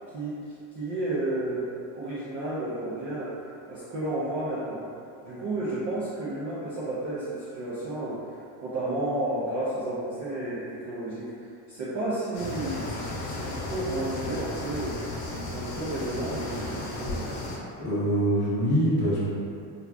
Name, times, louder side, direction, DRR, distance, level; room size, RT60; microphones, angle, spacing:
voice 1, 0.7-1.7 1.9-4.8 5.2-15.0 15.5-17.3, right 1 dB, 40° right, -9 dB, 0.4 m, -32 dB
sound 1, 12.3-17.6, left 2 dB, 70° left, 0.8 m, -34 dB
voice 2, 17.8-19.3, right 1 dB, 20° left, -11 dB, 0.9 m, -24 dB
3.2 x 2.4 x 2.4 m, 2.5 s
cardioid pair, 150°, 49 cm